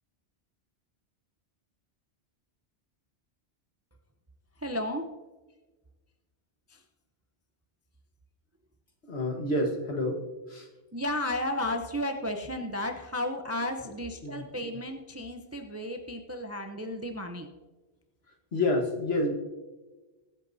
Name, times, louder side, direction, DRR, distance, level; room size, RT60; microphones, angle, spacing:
voice 1, 4.6-5.1 6.7-6.8 10.9-17.5, left 1 dB, 15° right, 5 dB, 0.5 m, -33 dB
voice 2, 9.1-10.2 10.5-10.7 14.2-14.4 18.5-19.3, left 1 dB, 60° left, 2 dB, 1.6 m, -28 dB
21.0 x 8.2 x 2.7 m, 1.2 s
omnidirectional pair, 1.2 m